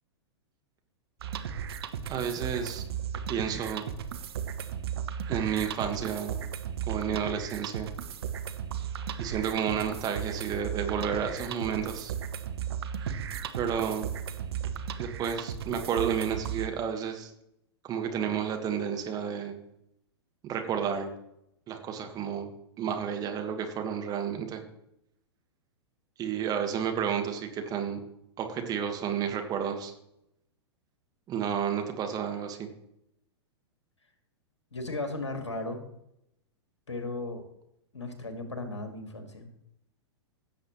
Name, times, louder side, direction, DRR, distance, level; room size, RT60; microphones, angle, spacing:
sound 1, 1.2-16.7, right 8 dB, 60° right, 0.9 m, -35 dB
voice 1, 2.1-2.8 3.3-3.9 5.3-6.3 6.9-7.9 9.2-12.1 13.5-14.1 15.0-17.3 17.8-19.5 20.4-21.1 21.7-22.5 22.8-24.6 26.2-28.0 28.4-29.9 31.3-32.7, right 8 dB, 25° right, 4 dB, 1.5 m, -31 dB
voice 2, 34.7-35.8 36.9-37.4 37.9-39.5, left 2 dB, 80° left, 6 dB, 2.1 m, -36 dB
17.0 x 7.5 x 3.1 m, 0.80 s
figure-of-eight pair, 105°, 15 cm